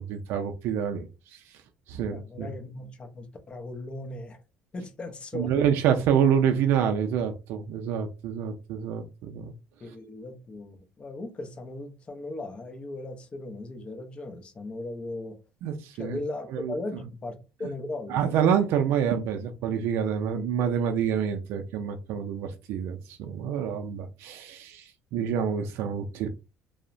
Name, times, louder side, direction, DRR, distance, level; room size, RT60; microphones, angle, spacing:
voice 1, 0.0-1.4 1.9-2.5 5.3-9.5 15.6-16.2 16.5-16.7 18.1-26.3, right 8 dB, 75° right, 0.3 m, -27 dB
voice 2, 1.9-4.4 4.7-5.5 9.8-15.4 16.0-18.3, left 2 dB, 30° left, 0.6 m, -37 dB
2.7 x 2.0 x 2.5 m
cardioid pair, 110°, 4 cm